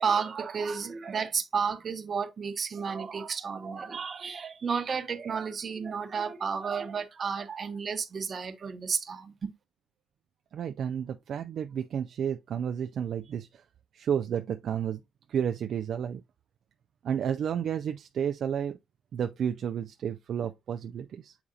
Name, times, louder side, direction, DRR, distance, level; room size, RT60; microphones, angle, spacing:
voice 1, 0.0-9.5, right 6 dB, 45° right, 1.0 m, -32 dB
voice 2, 10.5-13.6 13.9-15.0 15.3-16.2 17.0-18.8 19.1-21.4, right 8 dB, 65° right, 0.3 m, -31 dB
7.1 x 4.9 x 2.7 m
cardioid pair, 90°, 0 cm